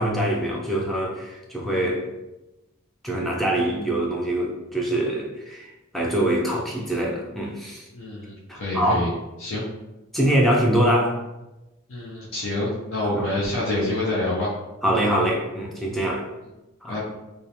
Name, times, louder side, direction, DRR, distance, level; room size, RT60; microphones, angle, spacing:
voice 1, 0.0-2.1 3.0-7.8 8.5-9.1 10.1-11.2 13.0-13.3 14.8-16.3 16.8-17.0, right 1 dB, ahead, -3 dB, 0.3 m, -24 dB
voice 2, 7.9-9.1 9.4-9.6 11.9-14.5 16.9-17.0, left 1 dB, 65° left, -6 dB, 0.5 m, -27 dB
2.3 x 2.1 x 2.8 m, 1.0 s
head